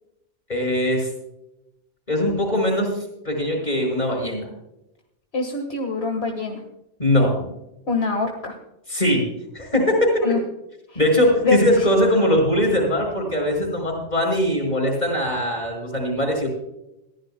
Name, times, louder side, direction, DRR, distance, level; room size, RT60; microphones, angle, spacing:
voice 1, 0.5-1.1 2.1-2.9 3.2-4.5 7.0-7.3 8.9-9.3 9.5-10.2 11.0-16.5, left 1 dB, 40° left, 1 dB, 5.6 m, -21 dB
voice 2, 5.3-6.6 7.9-8.5 10.2-10.4 10.9-11.0 11.4-11.9, left 4 dB, 70° left, 3 dB, 1.9 m, -24 dB
22.5 x 14.5 x 2.2 m, 0.88 s
omnidirectional pair, 1.1 m